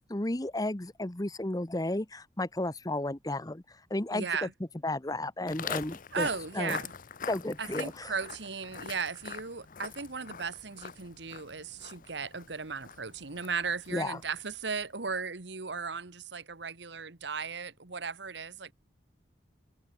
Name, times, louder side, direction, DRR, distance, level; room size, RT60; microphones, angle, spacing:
voice 1, 0.1-3.6 3.9-4.5 4.8-6.3 6.5-6.8 7.3-8.1 13.9-14.2, left 1 dB, 20° left, 1.1 m, -33 dB
voice 2, 4.1-4.5 6.1-6.9 7.6-18.7, right 5 dB, 65° right, 1.4 m, -36 dB
Walk footsteps, 5.5-14.7, left 7 dB, 45° left, 0.8 m, -44 dB
head